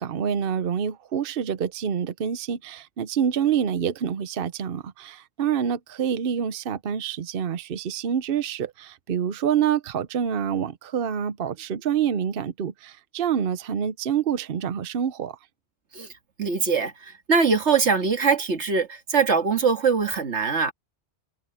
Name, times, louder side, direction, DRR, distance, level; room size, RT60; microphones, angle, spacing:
voice 1, 0.0-15.4, right 8 dB, 60° right, 0.9 m, -27 dB
voice 2, 16.4-20.7, right 5 dB, 90° right, 2.2 m, -22 dB
omnidirectional pair, 1.1 m